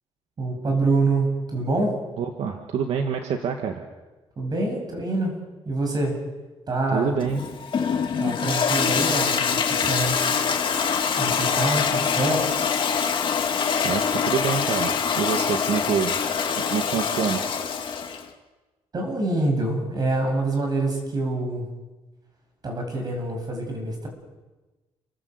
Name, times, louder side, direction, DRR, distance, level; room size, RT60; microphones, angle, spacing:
voice 1, 0.4-1.9 4.4-5.4 5.6-6.2 6.7-7.1 8.2-10.2 11.2-12.6 18.9-21.7 22.6-24.1, right 2 dB, 40° right, 3 dB, 7.9 m, -26 dB
voice 2, 2.2-3.8 6.9-7.4 13.8-16.2 16.7-17.6, right 7 dB, 75° right, 4 dB, 1.9 m, -26 dB
Toilet flush, 7.2-18.3, left 6 dB, 50° left, 2.2 m, -24 dB
30.0 x 12.5 x 8.1 m, 1.2 s
cardioid pair, 115°, 11 cm